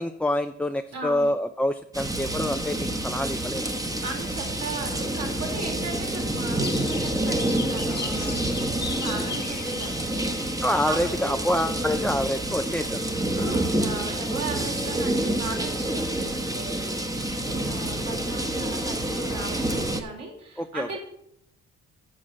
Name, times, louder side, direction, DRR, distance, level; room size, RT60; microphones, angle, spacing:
voice 1, 0.0-3.7 10.6-13.1 20.6-21.0, left 1 dB, 5° left, 6 dB, 0.4 m, -27 dB
voice 2, 0.9-1.3 4.0-11.4 13.3-21.0, right 3 dB, 55° right, 0 dB, 3.9 m, -37 dB
sound 1, 1.9-20.0, right 1 dB, 10° right, 1.1 m, -28 dB
sound 2, 6.6-12.1, left 5 dB, 35° left, 1.2 m, -39 dB
7.3 x 6.4 x 7.4 m, 0.73 s
cardioid pair, 90°, 30 cm